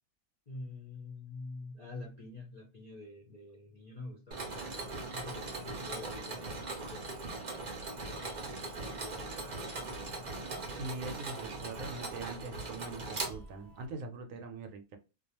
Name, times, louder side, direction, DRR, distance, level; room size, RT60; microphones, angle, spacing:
voice 1, 0.5-7.3 7.6-10.3, left 3 dB, 45° left, 0.5 m, -48 dB
Mechanisms, 4.3-13.9, right 3 dB, 50° right, 0.5 m, -40 dB
voice 2, 10.7-15.0, right 3 dB, 75° right, 1.0 m, -42 dB
2.3 x 2.3 x 2.8 m
omnidirectional pair, 1.5 m